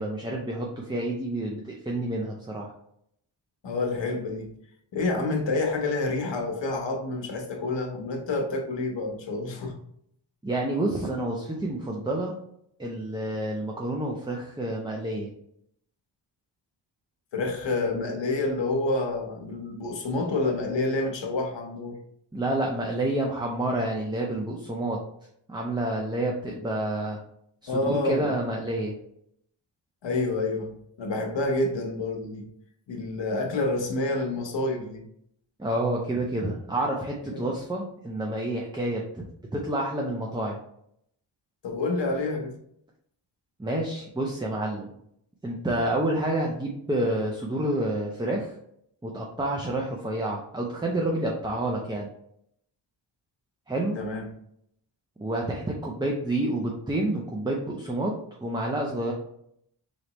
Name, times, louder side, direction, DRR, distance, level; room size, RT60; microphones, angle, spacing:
voice 1, 0.0-2.7 10.4-12.3 12.8-15.3 22.3-25.0 25.5-27.2 27.6-28.9 35.6-39.2 39.5-40.6 43.6-44.9 45.4-48.6 49.0-52.1 53.7-54.0 55.2-58.1 58.4-59.1, right 1 dB, 10° right, -1 dB, 0.5 m, -29 dB
voice 2, 3.6-4.5 4.9-9.8 17.3-22.0 27.7-28.3 30.0-30.7 31.0-32.5 32.9-35.0 37.3-37.4 41.6-42.6 53.9-54.2, left 2 dB, 65° left, 3 dB, 1.0 m, -28 dB
3.8 x 3.5 x 3.0 m, 0.72 s
wide cardioid pair, 95°, 46 cm